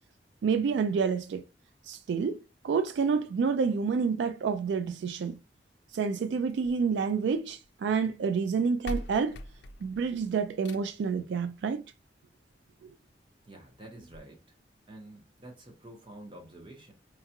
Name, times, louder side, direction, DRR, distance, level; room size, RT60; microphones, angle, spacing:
voice 1, 0.4-1.4 1.9-5.4 5.9-9.4 9.8-11.8 12.8-12.9, right 5 dB, 75° right, 0.3 m, -28 dB
sound 1, 6.5-7.7 8.5-8.6 8.8-11.1 12.5-12.6 13.1-13.2 13.4-13.5 14.1-14.2, left 1 dB, 75° left, 0.4 m, -42 dB
voice 2, 13.5-14.4 14.9-16.9, right 1 dB, 30° right, 0.9 m, -48 dB
4.7 x 2.3 x 2.8 m
head